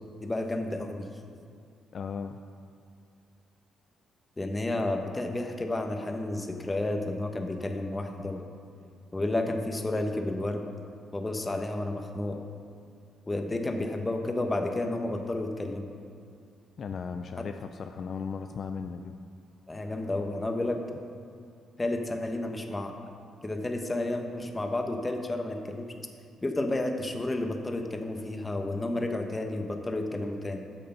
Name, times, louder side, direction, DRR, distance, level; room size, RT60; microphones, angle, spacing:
voice 1, 0.2-1.1 4.4-8.5 9.1-10.6 11.1-12.4 13.3-15.9 19.7-20.8 21.8-22.9 23.4-25.9 26.4-30.6, left 2 dB, 20° left, 4 dB, 1.0 m, -31 dB
voice 2, 1.9-2.4 16.8-19.1, left 5 dB, 55° left, 7 dB, 0.4 m, -36 dB
8.8 x 6.6 x 5.6 m, 2.3 s
cardioid pair, 90°, 0 cm